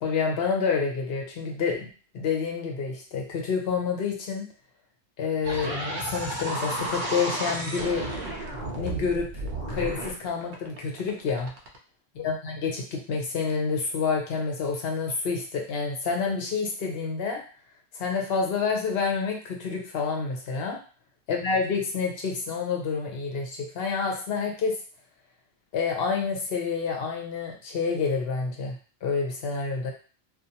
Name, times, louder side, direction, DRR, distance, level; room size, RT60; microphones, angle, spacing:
voice 1, 0.0-1.9 2.1-4.5 5.2-5.8 6.1-8.0 8.8-11.5 12.1-17.4 17.9-20.8 21.3-24.8 25.7-28.8 29.0-29.9, left 5 dB, 70° left, 1 dB, 0.9 m, -28 dB
sound 1, 5.4-11.8, right 1 dB, 55° right, 0.6 m, -32 dB
2.5 x 2.2 x 2.7 m, 0.38 s
omnidirectional pair, 1.1 m